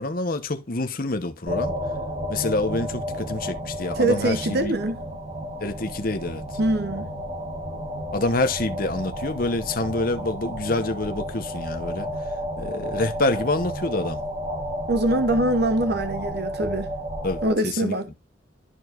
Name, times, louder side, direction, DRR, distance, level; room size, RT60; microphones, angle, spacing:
voice 1, 0.0-1.7 2.3-4.7 5.6-6.4 8.1-12.1 12.6-14.2 17.2-17.9, left 2 dB, 45° left, 0.9 m, -27 dB
sound 1, 1.5-17.5, equal, 30° right, 2.1 m, -32 dB
voice 2, 3.9-5.0 6.6-7.1 14.9-16.9 17.4-18.1, right 1 dB, 55° right, 0.8 m, -23 dB
13.0 x 4.7 x 2.5 m
head